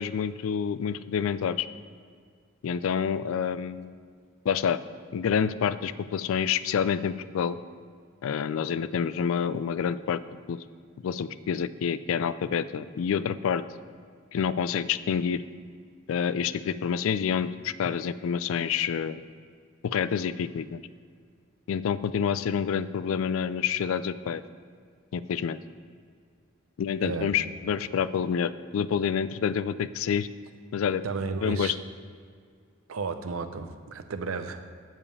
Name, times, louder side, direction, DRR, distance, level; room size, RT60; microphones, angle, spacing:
voice 1, 0.0-1.7 2.6-3.9 4.4-4.8 5.1-7.6 8.2-10.2 10.5-10.6 11.0-13.6 14.3-15.4 16.1-19.3 19.8-20.8 21.7-24.4 25.1-25.6 26.8-30.3 30.7-31.0 31.4-31.7, left 7 dB, 75° left, 15 dB, 0.3 m, -28 dB
voice 2, 27.0-27.4 31.0-31.7 32.9-34.6, right 4 dB, 80° right, 9 dB, 0.6 m, -33 dB
7.4 x 5.1 x 6.9 m, 2.1 s
head